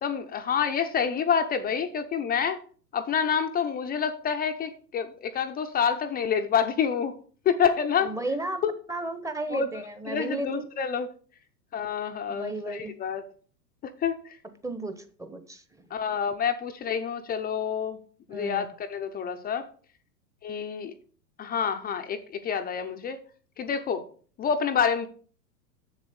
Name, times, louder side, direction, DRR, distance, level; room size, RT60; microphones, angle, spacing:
voice 1, 0.0-2.6 2.9-7.1 7.5-8.1 8.6-8.7 9.5-11.1 11.7-13.2 13.8-14.4 15.9-18.0 18.3-19.7 20.4-20.9 21.4-23.2 23.6-24.0 24.4-25.1, left 7 dB, 20° left, 7 dB, 0.6 m, -28 dB
voice 2, 8.0-8.6 8.9-10.6 12.3-12.9 14.6-15.8 18.3-18.7, right 2 dB, 5° right, 9 dB, 0.9 m, -34 dB
7.2 x 7.2 x 6.9 m, 0.44 s
hypercardioid pair, 110°, 50 cm